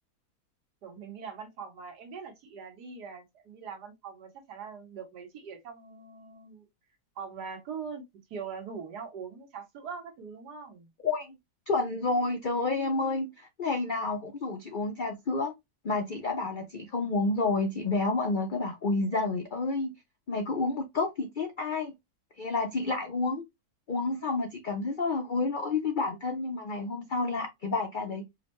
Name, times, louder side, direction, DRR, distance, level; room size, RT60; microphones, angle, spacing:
voice 1, 0.8-6.7 7.2-8.0 8.3-10.9, right 6 dB, 85° right, 1.6 m, -42 dB
voice 2, 11.0-11.4 11.7-15.5 15.8-19.9 20.3-21.9 22.4-23.4 23.9-28.3, left 3 dB, 85° left, 0.4 m, -30 dB
5.0 x 2.1 x 3.0 m
omnidirectional pair, 1.7 m